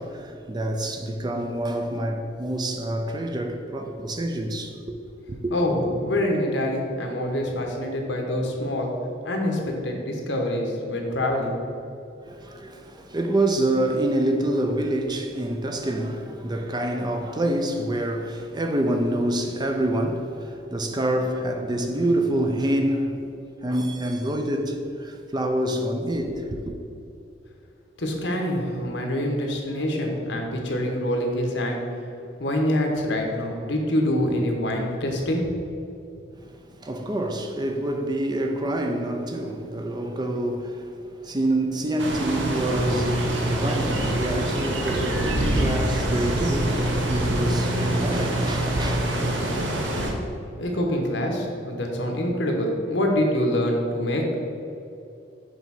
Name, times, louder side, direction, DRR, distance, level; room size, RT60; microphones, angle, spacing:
voice 1, 0.0-5.0 5.4-5.5 12.2-23.2 23.6-26.8 36.4-49.0, right 1 dB, 25° right, 0.5 m, -27 dB
voice 2, 5.5-8.9 9.2-11.5 28.0-31.8 32.4-35.5 50.6-54.3, left 1 dB, 70° left, 1.2 m, -25 dB
sound 1, 42.0-50.1, right 1 dB, 75° right, 1.0 m, -25 dB
6.9 x 3.5 x 5.9 m
head